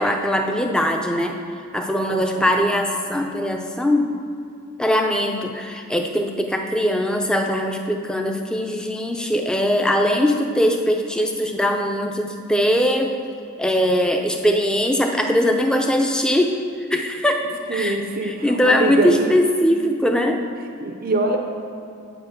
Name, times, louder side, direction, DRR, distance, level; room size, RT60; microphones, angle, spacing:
voice 1, 0.0-1.4 1.7-4.2 4.8-13.2 13.6-18.0 18.2-20.4, equal, 5° left, 3 dB, 0.6 m, -21 dB
voice 2, 2.1-2.7 17.7-19.3 20.8-21.4, right 2 dB, 45° right, 3 dB, 0.7 m, -24 dB
9.0 x 5.1 x 7.7 m, 2.7 s
head